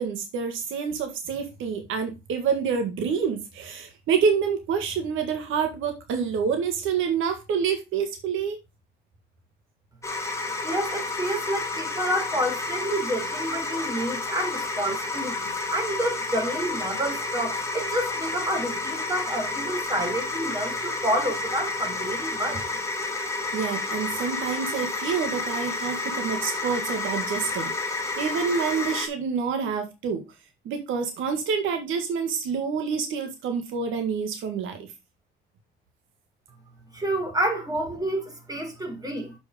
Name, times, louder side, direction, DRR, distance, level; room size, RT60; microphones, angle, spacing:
voice 1, 0.0-8.6 23.5-30.2 30.7-34.9, right 6 dB, 90° right, 1.8 m, -27 dB
sound 1, 10.0-29.1, left 3 dB, 15° left, 2.5 m, -30 dB
voice 2, 10.6-22.6 36.9-39.4, right 1 dB, 20° right, 4.2 m, -29 dB
6.9 x 6.2 x 5.1 m
cardioid pair, 90°, 20 cm